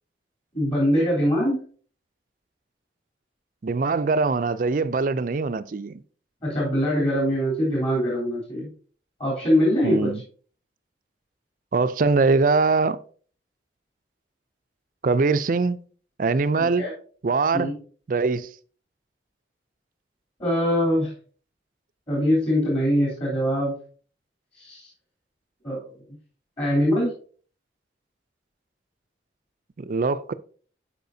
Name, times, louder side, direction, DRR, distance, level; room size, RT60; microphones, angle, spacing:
voice 1, 0.5-1.6 6.4-8.7 9.2-10.1 16.6-16.9 17.5-17.7 20.4-21.1 22.1-23.7 24.6-24.9 25.6-25.8 26.6-27.1, equal, 35° left, 3.3 m, -23 dB
voice 2, 3.6-6.0 9.8-10.2 11.7-13.0 15.0-15.8 16.2-16.8 17.2-17.7 18.1-18.5 29.8-30.3, right 4 dB, 45° right, 0.4 m, -22 dB
11.5 x 5.0 x 2.7 m
head